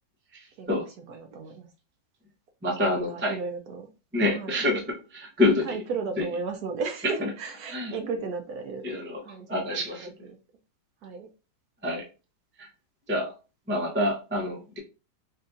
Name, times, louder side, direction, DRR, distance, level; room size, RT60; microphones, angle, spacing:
voice 1, 0.3-0.8 2.6-3.4 4.1-4.8 5.1-5.6 7.7-7.9 8.8-9.2 9.5-10.1 11.8-12.0 12.6-12.7 13.1-13.3 13.7-14.8, left 2 dB, 15° right, 0 dB, 0.4 m, -27 dB
voice 2, 1.1-1.7 2.9-3.9 4.3-4.6 5.6-9.0 9.2-10.4 11.0-11.3, right 4 dB, 70° right, 4 dB, 1.0 m, -35 dB
5.3 x 2.4 x 2.5 m, 0.32 s
omnidirectional pair, 1.9 m